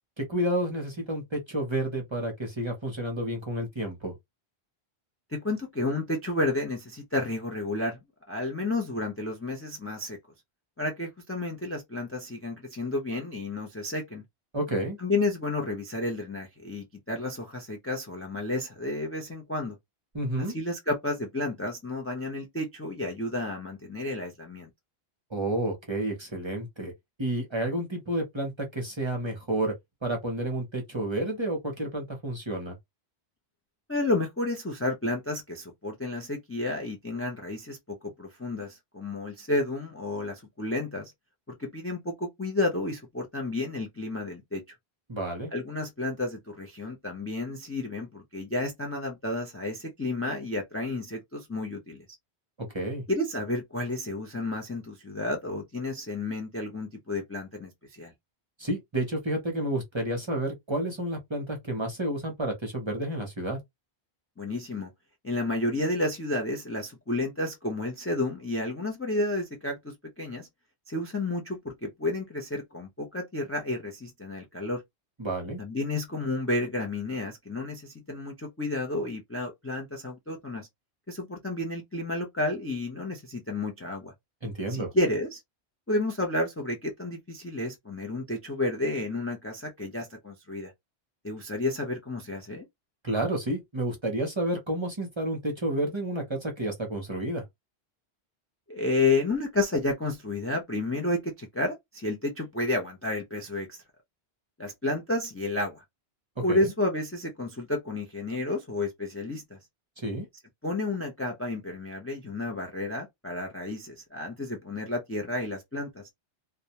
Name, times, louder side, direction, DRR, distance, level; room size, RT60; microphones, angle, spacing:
voice 1, 0.2-4.1 14.5-15.0 20.1-20.5 25.3-26.9 27.2-29.7 30.0-32.7 45.1-45.5 52.6-53.0 58.6-63.6 75.2-75.6 84.4-84.9 93.0-97.4 106.5-106.7 110.0-110.3, right 1 dB, 30° right, 0.7 m, -30 dB
voice 2, 5.3-10.2 10.8-14.2 15.0-19.8 20.4-24.7 33.9-41.1 41.5-44.6 45.5-52.0 53.1-58.1 64.4-64.9 65.2-70.5 70.9-74.8 75.6-80.7 81.1-84.1 84.7-85.4 85.9-90.7 91.2-92.6 98.7-103.8 104.6-105.8 106.4-109.6 110.6-116.0, left 2 dB, 20° left, 0.4 m, -31 dB
2.3 x 2.1 x 2.8 m
omnidirectional pair, 1.1 m